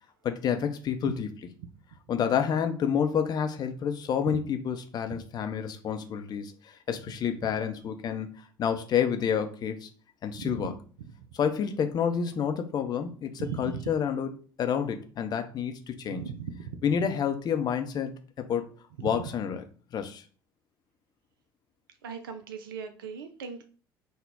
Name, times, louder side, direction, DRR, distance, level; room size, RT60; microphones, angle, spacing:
voice 1, 0.2-1.3 2.1-8.3 8.6-9.9 10.2-10.7 11.3-14.3 14.6-16.2 16.8-18.7 19.0-19.6 19.9-20.2, left 7 dB, 35° left, 6 dB, 0.5 m, -29 dB
voice 2, 10.3-10.7 13.4-13.8 16.1-16.8 19.0-19.1 22.0-23.6, right 7 dB, 70° right, 7 dB, 0.4 m, -37 dB
3.8 x 2.1 x 3.5 m, 0.39 s
figure-of-eight pair, 60°, 12 cm